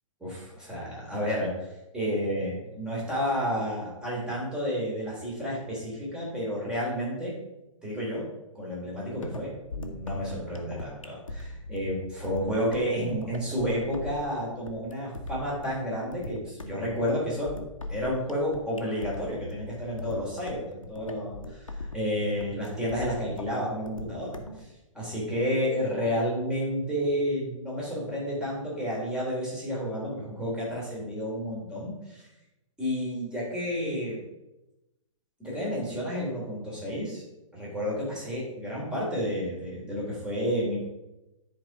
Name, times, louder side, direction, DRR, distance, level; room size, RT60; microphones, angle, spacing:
voice 1, 0.2-1.7 1.9-7.3 7.8-8.2 8.5-9.5 9.9-17.5 17.9-24.7 24.9-32.3 32.8-34.2 35.4-37.2 37.5-40.8, equal, 5° right, -6 dB, 3.3 m, -31 dB
sound 1, 9.2-24.6, left 2 dB, 75° left, 1.2 m, -40 dB
10.5 x 4.6 x 5.3 m, 0.96 s
figure-of-eight pair, 120°, 17 cm